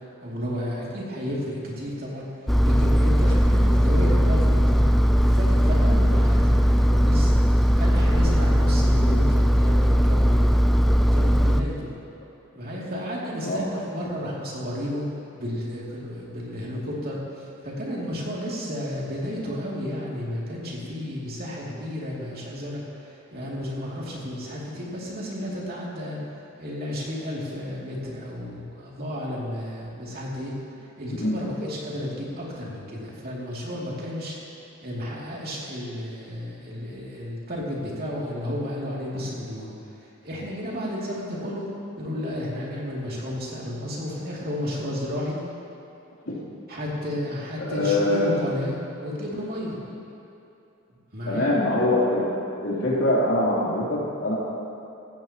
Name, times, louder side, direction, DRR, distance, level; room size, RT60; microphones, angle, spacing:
voice 1, 0.2-2.3 2.6-4.8 5.1-7.3 7.8-10.6 11.1-11.9 12.5-15.1 15.3-17.2 17.6-26.2 26.6-30.5 31.0-34.4 34.8-39.7 40.2-41.7 42.0-45.4 46.7-49.8 51.1-51.5, left 1 dB, 50° right, -5 dB, 2.7 m, -32 dB
Engine, 2.5-11.6, equal, ahead, 0.4 m, -19 dB
voice 2, 47.6-48.3 51.2-52.2 52.6-53.9 54.2-54.3, left 1 dB, 70° left, -6 dB, 3.5 m, -23 dB
15.5 x 15.0 x 3.0 m, 2.8 s
head